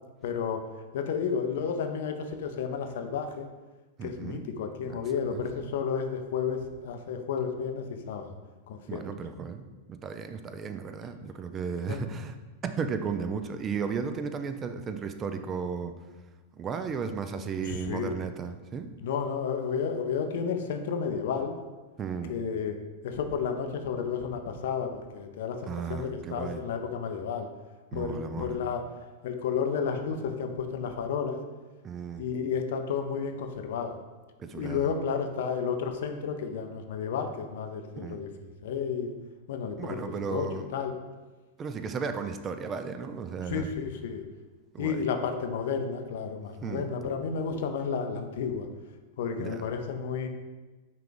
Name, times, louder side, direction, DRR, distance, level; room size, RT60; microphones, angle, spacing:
voice 1, 0.2-0.6 0.9-3.5 4.0-8.4 8.7-9.0 11.9-12.0 17.6-18.1 19.0-21.6 22.3-27.5 27.9-28.8 29.2-31.4 32.2-34.0 34.5-39.1 39.5-40.9 43.5-44.2 44.8-48.7 49.2-50.3, left 6 dB, 70° left, 6 dB, 0.5 m, -32 dB
voice 2, 4.0-4.4 4.8-5.0 5.3-5.7 8.9-12.3 12.6-15.9 16.6-18.9 22.0-22.4 25.7-26.6 27.9-28.6 31.8-32.3 34.4-34.9 37.9-38.2 39.8-40.7 41.6-43.7 44.7-45.1 46.6-46.9 49.4-49.7, right 6 dB, 30° right, 8 dB, 0.4 m, -35 dB
5.7 x 2.4 x 3.8 m, 1.2 s
hypercardioid pair, 110°, 0 cm